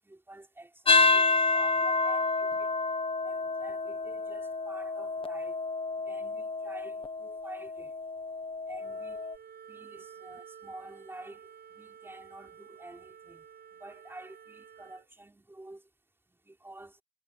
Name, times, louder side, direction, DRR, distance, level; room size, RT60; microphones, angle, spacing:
voice 1, 0.0-2.7 3.2-5.6 6.0-7.9 8.7-9.2 9.7-13.5 13.7-15.9 16.3-17.0, right 2 dB, 15° right, 5.8 m, -49 dB
sound 1, 0.9-9.4, left 3 dB, 35° left, 1.4 m, -29 dB
Wind instrument woodwind instrument, 8.7-15.1, right 8 dB, 85° right, 7.0 m, -51 dB
wide cardioid pair, 135°, 16 cm